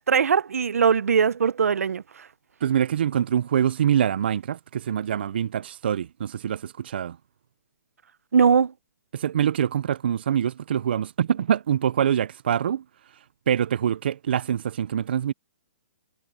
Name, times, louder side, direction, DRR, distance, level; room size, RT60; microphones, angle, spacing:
voice 1, 0.1-2.0 8.3-8.7, right 6 dB, 80° right, 0.8 m, -20 dB
voice 2, 2.6-7.2 9.1-12.8 13.5-15.3, right 9 dB, 45° right, 0.3 m, -24 dB
hypercardioid pair, 175°, 8 cm